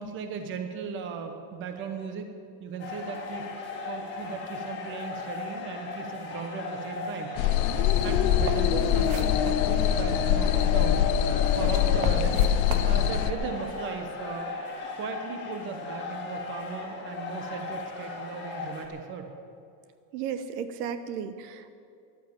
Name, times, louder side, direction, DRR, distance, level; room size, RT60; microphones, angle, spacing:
voice 1, 0.0-2.3 2.6-3.4 3.9-7.6 8.0-11.0 11.5-12.5 12.8-14.5 14.8-19.3, right 5 dB, 25° right, 5 dB, 1.1 m, -37 dB
sound 1, 2.8-18.9, left 3 dB, 20° left, 2.0 m, -37 dB
sound 2, 7.4-13.3, left 10 dB, 60° left, 0.8 m, -23 dB
sound 3, 7.4-13.0, right 6 dB, 60° right, 1.5 m, -42 dB
voice 2, 20.1-21.8, right 7 dB, 75° right, 10 dB, 1.2 m, -34 dB
14.0 x 12.0 x 7.1 m, 2.5 s
cardioid pair, 180°, 49 cm